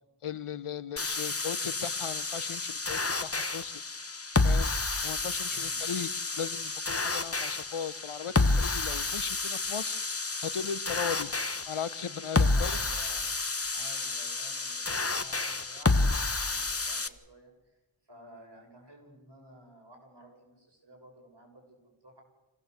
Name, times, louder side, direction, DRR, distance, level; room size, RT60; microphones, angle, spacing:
voice 1, 0.2-3.8 4.4-4.7 5.0-6.1 6.4-9.9 10.4-11.3 11.7-12.8, left 7 dB, 80° left, 16 dB, 0.9 m, -37 dB
sound 1, 1.0-17.1, left 3 dB, 30° left, 1.1 m, -30 dB
voice 2, 12.4-17.5 18.1-21.8 22.0-22.2, equal, 55° right, 1 dB, 6.8 m, -53 dB
25.5 x 16.5 x 8.1 m, 1.1 s
wide cardioid pair, 65°, 50 cm